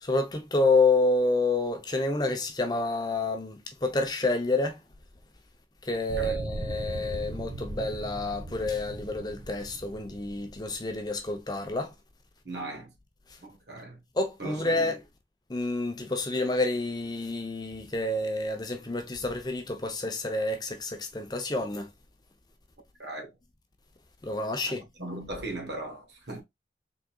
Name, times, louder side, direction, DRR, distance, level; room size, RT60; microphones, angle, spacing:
voice 1, 0.0-4.8 5.8-11.9 14.1-15.0 15.5-21.9 24.2-24.8, left 2 dB, 25° left, 0.6 m, -28 dB
sound 1, 6.1-11.0, right 1 dB, 55° right, 0.9 m, -38 dB
voice 2, 6.2-6.5 12.4-12.9 13.4-14.0 14.4-14.9 23.0-23.3 24.6-24.7 25.0-26.4, right 2 dB, 75° right, 1.2 m, -38 dB
4.1 x 3.6 x 2.3 m
head